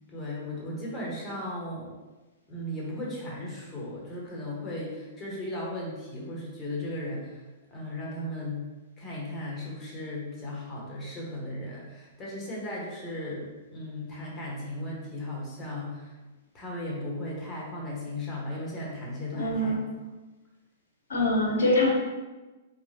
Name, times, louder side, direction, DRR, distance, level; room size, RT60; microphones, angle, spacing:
voice 1, 0.1-2.0 2.5-7.4 7.7-8.7 9.0-16.1 16.5-19.8, left 1 dB, 20° left, -4 dB, 1.3 m, -36 dB
voice 2, 19.3-19.8 21.1-21.9, left 1 dB, 65° left, -2 dB, 1.2 m, -24 dB
4.4 x 3.2 x 2.8 m, 1.2 s
figure-of-eight pair, 105°, 0 cm